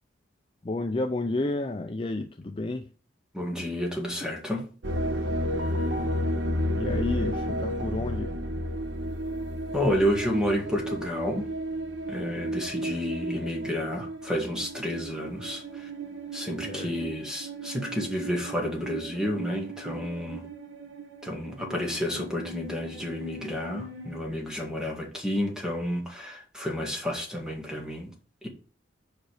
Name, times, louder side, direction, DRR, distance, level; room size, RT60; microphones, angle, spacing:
voice 1, 0.6-2.9 6.8-8.3 16.6-16.9, left 2 dB, 30° left, 0.5 m, -31 dB
voice 2, 3.3-4.7 9.7-11.5 12.1-15.9 16.3-20.5 21.2-28.1 28.4-28.5, equal, 5° right, 1.9 m, -30 dB
sound 1, 4.8-24.2, equal, 70° right, 1.1 m, -33 dB
5.2 x 5.1 x 6.4 m
head